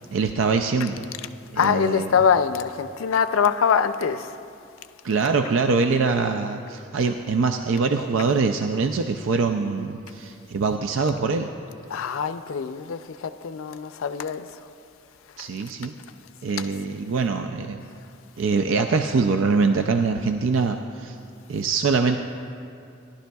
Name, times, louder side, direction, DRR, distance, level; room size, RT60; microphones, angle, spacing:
voice 1, 0.1-1.1 1.5-2.1 5.0-11.5 15.4-15.9 16.4-17.8 18.4-21.2 21.5-22.2, right 4 dB, 75° right, 0.4 m, -23 dB
voice 2, 1.6-4.4 11.9-14.6 15.4-15.5 16.6-16.7, left 7 dB, 90° left, 0.4 m, -24 dB
17.5 x 11.5 x 2.3 m
head